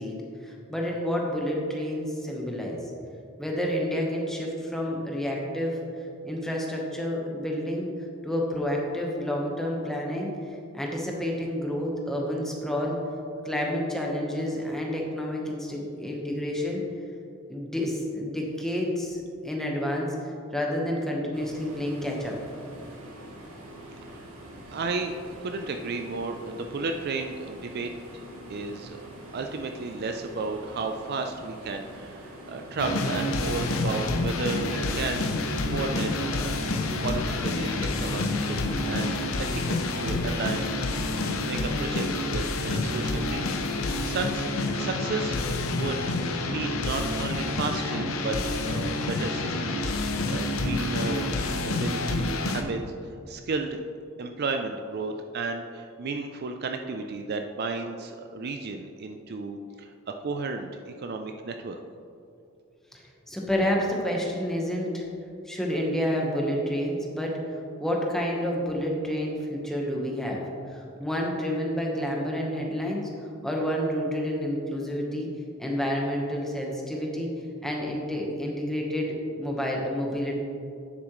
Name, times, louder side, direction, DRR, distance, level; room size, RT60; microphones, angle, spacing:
voice 1, 0.0-2.8 3.4-5.8 6.2-7.9 8.2-10.3 10.7-13.0 13.4-16.8 17.5-20.1 20.5-22.4 62.9-65.0 65.4-70.4 70.7-73.0 73.4-75.3 75.6-77.3 77.6-80.4, equal, ahead, -2 dB, 1.1 m, -29 dB
sound 1, 21.3-39.8, right 1 dB, 75° right, 1.6 m, -45 dB
voice 2, 24.0-24.4 24.7-27.9 28.5-29.0 29.3-36.5 37.0-44.5 44.8-45.4 45.7-49.9 50.3-52.8 53.3-53.8 54.2-61.8, right 3 dB, 50° right, 5 dB, 0.4 m, -33 dB
sound 2, 32.8-52.6, left 2 dB, 70° left, 0.7 m, -28 dB
9.5 x 7.5 x 3.1 m, 2.5 s
head